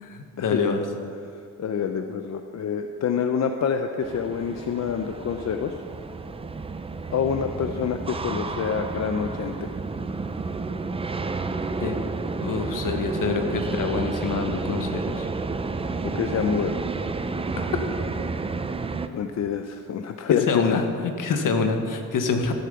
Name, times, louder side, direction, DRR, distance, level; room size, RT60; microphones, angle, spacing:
voice 1, 0.0-0.8 11.8-12.0 12.4-15.3 20.5-22.5, left 4 dB, 70° left, 5 dB, 1.5 m, -26 dB
voice 2, 1.6-5.7 7.1-9.7 16.1-16.8 19.1-20.8 21.3-21.4, left 7 dB, 55° left, 6 dB, 0.6 m, -27 dB
sound 1, 4.0-19.1, right 4 dB, 15° right, 0.5 m, -31 dB
14.0 x 8.5 x 7.0 m, 2.3 s
wide cardioid pair, 160°, 33 cm